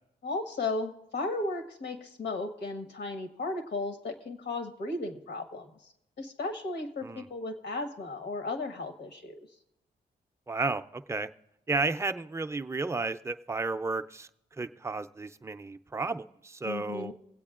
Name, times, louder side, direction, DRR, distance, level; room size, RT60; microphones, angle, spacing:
voice 1, 0.2-5.7 6.2-9.3 16.6-17.1, left 2 dB, 80° left, 5 dB, 1.4 m, -35 dB
voice 2, 10.5-11.3 11.7-14.3 14.6-17.1, right 3 dB, 15° right, 9 dB, 0.4 m, -32 dB
24.5 x 8.3 x 2.4 m, 0.82 s
cardioid pair, 85°, 18 cm